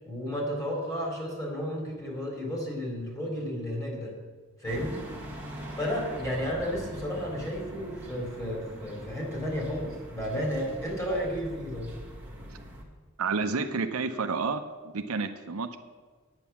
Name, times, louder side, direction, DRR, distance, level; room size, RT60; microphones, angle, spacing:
voice 1, 0.0-4.1 4.6-5.0 5.8-11.9, equal, 15° left, -2 dB, 3.7 m, -32 dB
sound 1, 4.7-12.8, equal, 10° right, 1.8 m, -43 dB
voice 2, 13.2-15.8, right 4 dB, 80° right, 7 dB, 0.7 m, -30 dB
10.5 x 9.2 x 7.1 m, 1.4 s
head